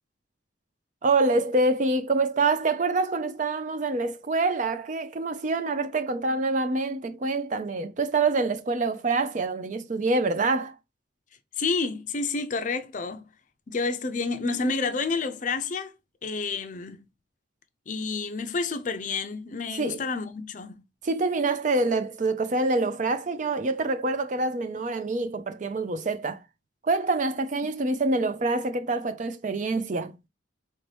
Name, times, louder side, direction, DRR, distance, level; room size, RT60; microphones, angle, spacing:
voice 1, 1.0-10.7 19.8-20.0 21.0-26.4 26.8-30.1, right 3 dB, 40° right, 0.4 m, -26 dB
voice 2, 11.6-13.3 13.7-15.9 16.2-17.0 17.9-20.8, left 4 dB, 40° left, 0.5 m, -29 dB
4.4 x 2.7 x 3.3 m
head